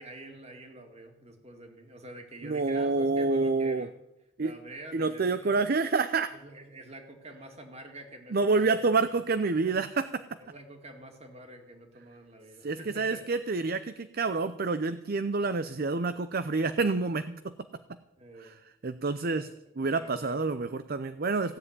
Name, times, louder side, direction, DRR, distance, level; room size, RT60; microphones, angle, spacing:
voice 1, 0.0-4.0 4.4-5.7 6.4-8.9 9.6-9.9 10.4-13.2 18.2-18.6 19.3-19.4 19.9-20.5, right 1 dB, 30° right, 4 dB, 2.3 m, -47 dB
voice 2, 2.4-3.9 4.4-4.5 4.9-6.3 8.3-10.2 12.6-17.6 18.4-18.6 18.8-19.5 19.8-21.6, right 3 dB, 45° right, 12 dB, 0.5 m, -28 dB
16.0 x 7.6 x 9.7 m, 0.94 s
head